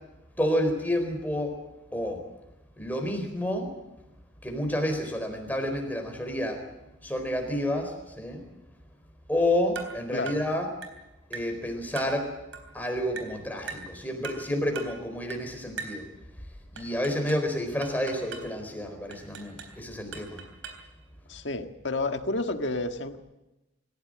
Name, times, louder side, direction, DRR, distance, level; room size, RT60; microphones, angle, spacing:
voice 1, 0.4-1.6 1.9-2.2 2.8-3.7 4.4-6.6 7.0-8.4 9.3-10.7 11.3-12.3 12.7-16.0 16.7-20.4, left 1 dB, 10° left, 4 dB, 4.3 m, -29 dB
sound 1, 9.7-10.0 10.3-10.5 10.8-11.0 11.3-11.6 12.0-12.2 12.5-12.7 13.2-13.4 13.7-13.9 14.2-14.5 14.7-15.0 15.3-15.5 15.8-16.0 16.8-17.5 17.8-18.5 19.1-19.8 20.1-20.9, right 5 dB, 80° right, 3.7 m, -40 dB
voice 2, 21.3-23.2, left 2 dB, 65° left, 6 dB, 1.7 m, -30 dB
27.0 x 15.5 x 7.7 m, 0.99 s
head